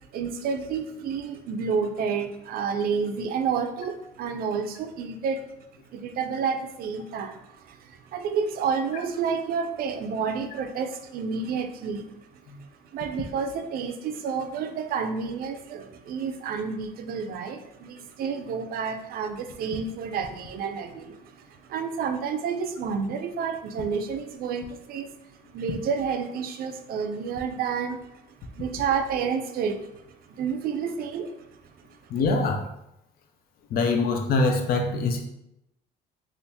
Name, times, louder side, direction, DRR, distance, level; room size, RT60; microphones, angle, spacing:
voice 1, 0.1-5.4 5.9-12.1 12.9-25.1 25.5-28.0 28.5-31.5, right 6 dB, 60° right, 7 dB, 0.4 m, -30 dB
voice 2, 32.1-32.6 33.7-35.3, left 3 dB, 60° left, 4 dB, 0.5 m, -24 dB
3.3 x 2.4 x 2.8 m, 0.84 s
cardioid pair, 110°, 17 cm